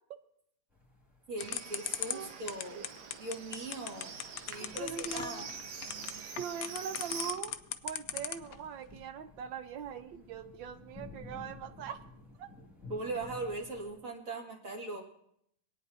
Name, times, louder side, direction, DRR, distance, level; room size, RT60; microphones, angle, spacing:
sound 1, 0.7-14.0, left 2 dB, ahead, 1.9 m, -55 dB
voice 1, 1.3-2.9 3.2-4.2 4.5-5.5 12.9-15.0, right 2 dB, 45° right, 0 dB, 2.2 m, -39 dB
sound 2, 1.4-8.5, left 11 dB, 70° left, 0.8 m, -37 dB
Livestock farm animals working animals, 1.4-7.3, right 5 dB, 65° right, 1.3 m, -45 dB
voice 2, 4.6-5.4 6.4-7.6 7.8-12.0 12.4-12.5, right 7 dB, 85° right, 9 dB, 1.5 m, -41 dB
26.0 x 9.1 x 2.7 m, 0.73 s
omnidirectional pair, 2.0 m